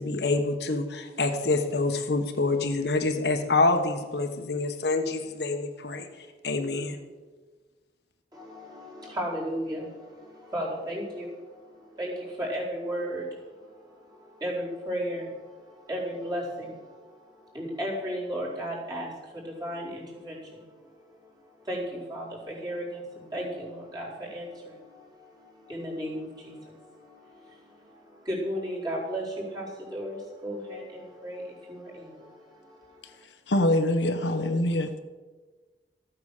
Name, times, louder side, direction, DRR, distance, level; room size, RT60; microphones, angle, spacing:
voice 1, 0.0-7.0, left 3 dB, 65° left, 5 dB, 1.3 m, -27 dB
voice 2, 8.3-33.2, equal, 25° right, -5 dB, 4.4 m, -36 dB
voice 3, 33.5-35.0, left 1 dB, 85° left, 7 dB, 1.1 m, -24 dB
14.5 x 8.9 x 6.6 m, 1.3 s
head